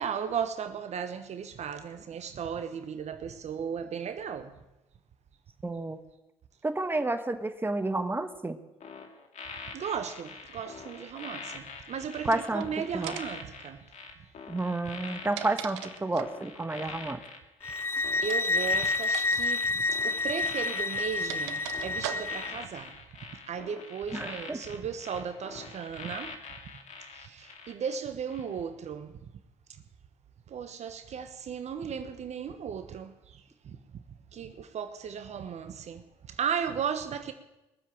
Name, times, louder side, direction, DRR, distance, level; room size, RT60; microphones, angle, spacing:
voice 1, 0.0-4.5 9.7-13.8 18.2-23.0 23.5-26.4 27.1-29.1 30.5-33.8 34.3-37.3, right 7 dB, 50° right, 1.2 m, -36 dB
voice 2, 5.6-6.0 6.6-8.6 12.2-12.6 12.9-13.2 14.5-17.2 24.1-24.6, right 2 dB, 15° right, 1.5 m, -30 dB
sound 1, 8.8-28.0 28.3-28.6, left 4 dB, 55° left, 2.5 m, -44 dB
sound 2, 12.2-12.6 13.0-13.4 14.9-16.4 18.2-18.5 19.0-19.3 19.5-19.7 20.6-22.6, right 11 dB, 90° right, 0.9 m, -40 dB
sound 3, 17.6-22.5, left 3 dB, 15° left, 0.5 m, -29 dB
21.0 x 7.5 x 8.8 m
hypercardioid pair, 65°, 14 cm